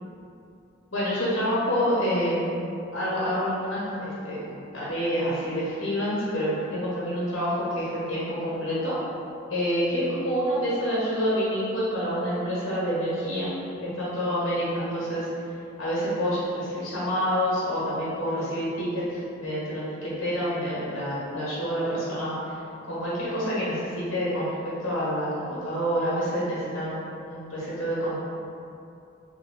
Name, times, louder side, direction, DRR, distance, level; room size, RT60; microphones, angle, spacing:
voice 1, 0.9-2.5 2.9-9.0 9.5-13.5 13.9-15.3 15.8-22.3 22.9-28.2, equal, 75° left, -9 dB, 1.0 m, -27 dB
3.4 x 2.3 x 3.4 m, 2.7 s
head